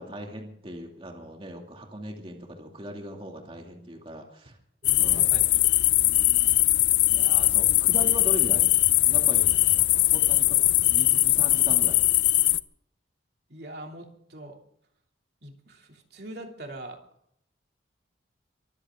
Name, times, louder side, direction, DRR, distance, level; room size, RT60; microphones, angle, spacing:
voice 1, 0.0-4.5 5.0-5.2 6.0-6.6 7.1-8.7 9.1-9.5 10.1-12.0, equal, 30° right, 1 dB, 2.6 m, -39 dB
sound 1, 4.8-12.6, left 16 dB, 75° left, 0.7 m, -21 dB
voice 2, 4.8-5.7 10.6-10.8 13.5-14.6 15.4-17.0, right 1 dB, 55° right, 2 dB, 3.0 m, -42 dB
23.5 x 15.0 x 3.8 m, 0.70 s
head